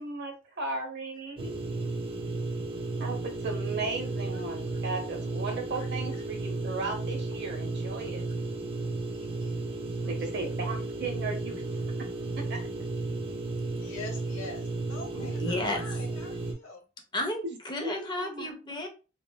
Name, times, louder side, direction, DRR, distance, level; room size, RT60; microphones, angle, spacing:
voice 1, 0.0-1.6 3.0-8.2 10.0-11.6 12.2-12.6 15.4-15.7 17.8-18.5, right 3 dB, 60° right, 3 dB, 0.7 m, -36 dB
sound 1, 1.4-16.5, right 3 dB, 25° right, 0.4 m, -34 dB
voice 2, 1.6-2.0 4.3-4.4 5.7-5.9 9.1-9.5 9.9-10.8 13.8-16.8, left 3 dB, 85° left, 2 dB, 0.9 m, -46 dB
voice 3, 15.1-15.9 17.1-18.9, left 1 dB, 20° left, 4 dB, 0.5 m, -33 dB
3.0 x 2.1 x 2.2 m, 0.32 s
head